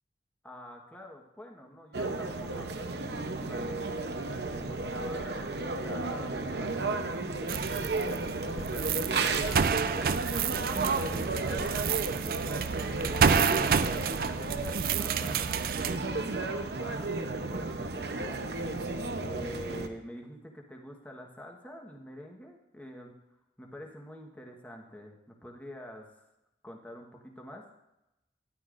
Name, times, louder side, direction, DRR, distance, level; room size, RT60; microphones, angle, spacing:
voice 1, 0.4-4.0 4.5-8.0 8.5-17.2 17.5-18.4 19.2-23.1 23.6-26.3 26.6-27.6, left 1 dB, 10° left, 1 dB, 1.2 m, -46 dB
sound 1, 1.9-19.9, right 3 dB, 70° right, 0.8 m, -33 dB
sound 2, 7.5-16.0, right 6 dB, 55° right, 0.4 m, -29 dB
13.0 x 11.0 x 2.5 m, 0.92 s
head